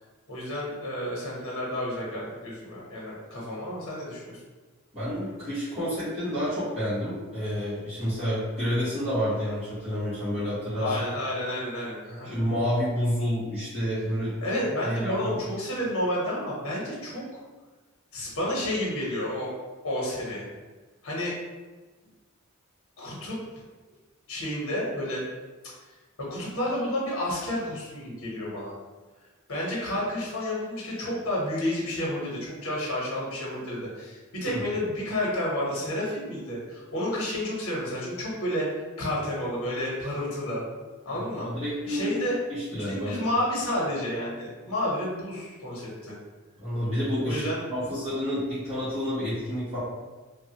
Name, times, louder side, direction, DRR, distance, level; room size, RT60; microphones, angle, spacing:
voice 1, 0.3-4.4 10.8-12.3 14.4-17.4 18.1-19.5 19.8-20.5 21.0-21.3 23.0-23.4 24.3-25.2 26.3-28.7 29.5-40.7 41.0-41.5 41.9-42.4 42.7-46.2 47.2-47.6, left 1 dB, 85° left, -5 dB, 0.9 m, -30 dB
voice 2, 4.9-10.9 12.2-14.4 14.8-15.4 34.4-34.6 41.1-42.1 42.5-43.2 46.6-47.4 47.7-49.8, equal, 30° right, -15 dB, 1.3 m, -29 dB
3.0 x 2.3 x 2.8 m, 1.3 s
head